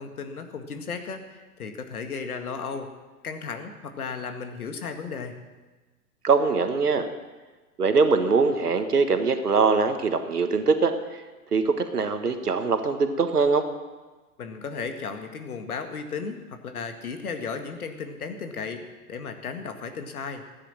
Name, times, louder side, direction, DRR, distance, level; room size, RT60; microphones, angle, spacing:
voice 1, 0.0-2.9 3.2-5.4 14.4-18.8 19.1-20.4, left 5 dB, 70° left, 6 dB, 2.0 m, -35 dB
voice 2, 6.2-7.1 7.8-10.9 11.5-13.6, right 4 dB, 85° right, 8 dB, 1.6 m, -22 dB
15.5 x 10.0 x 7.4 m, 1.3 s
figure-of-eight pair, 105°, 45 cm